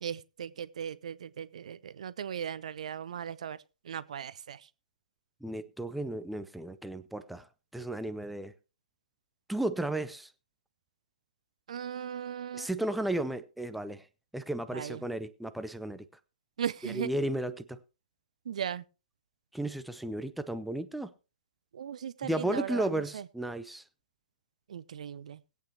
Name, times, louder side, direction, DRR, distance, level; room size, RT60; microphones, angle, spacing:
voice 1, 0.0-3.6 3.9-4.6 11.7-12.7 14.7-15.0 16.6-17.1 18.5-18.8 21.7-23.2 24.7-25.4, right 8 dB, 50° right, 0.5 m, -37 dB
voice 2, 5.4-7.4 7.7-8.5 9.5-10.3 12.5-14.0 14.3-16.0 16.8-17.8 19.5-21.1 22.2-23.8, right 1 dB, ahead, 0.5 m, -34 dB
20.0 x 8.4 x 2.9 m
figure-of-eight pair, 120°, 4 cm